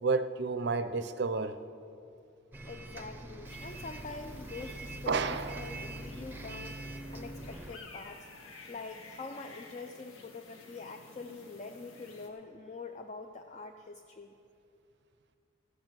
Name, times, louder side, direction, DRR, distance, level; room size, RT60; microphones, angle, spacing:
voice 1, 0.0-1.6 5.1-5.6, right 4 dB, 55° right, 11 dB, 0.5 m, -31 dB
Bus, 2.5-7.8, right 1 dB, 10° right, 0.6 m, -43 dB
voice 2, 2.6-6.8 7.1-8.3 8.7-14.3, left 3 dB, 35° left, 5 dB, 0.4 m, -45 dB
sound 1, 3.5-12.3, left 3 dB, 80° left, 1.4 m, -53 dB
14.0 x 6.2 x 8.9 m, 2.6 s
head